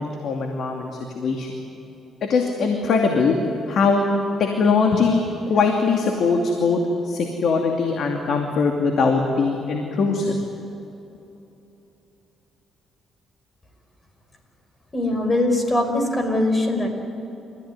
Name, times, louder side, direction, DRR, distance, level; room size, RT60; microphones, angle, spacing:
voice 1, 0.0-1.5 2.3-3.4 3.7-4.0 4.4-10.3, left 4 dB, 65° left, 2 dB, 2.6 m, -21 dB
voice 2, 14.9-16.9, left 1 dB, 25° left, 5 dB, 5.3 m, -21 dB
29.5 x 15.5 x 9.7 m, 3.0 s
cardioid pair, 90°, 0 cm